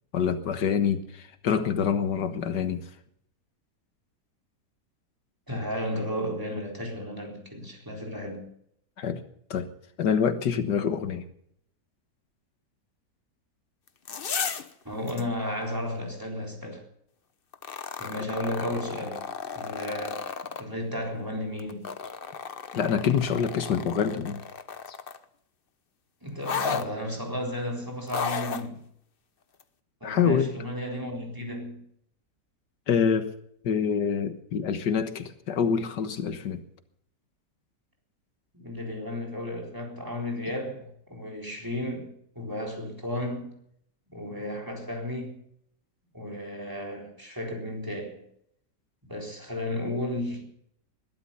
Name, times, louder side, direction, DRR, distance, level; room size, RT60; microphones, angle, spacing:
voice 1, 0.1-2.8 9.0-9.2 9.5-9.7 10.0-11.2 22.7-24.4 30.0-30.5 32.9-33.3 33.6-36.6, left 7 dB, 90° left, 1.9 m, -26 dB
voice 2, 5.5-8.5 14.8-16.8 18.0-19.3 19.5-20.3 20.6-21.9 26.2-28.8 30.0-31.8 38.5-42.1 42.4-43.6 44.1-45.4 46.1-48.2 49.0-50.5, left 1 dB, 10° right, 4.0 m, -33 dB
sound 1, 13.9-14.7 15.1-15.2 17.5-20.6 21.6-25.2 26.4-26.9 28.1-28.7 29.6-29.7, left 6 dB, 40° left, 0.9 m, -34 dB
21.0 x 12.0 x 5.6 m
omnidirectional pair, 1.8 m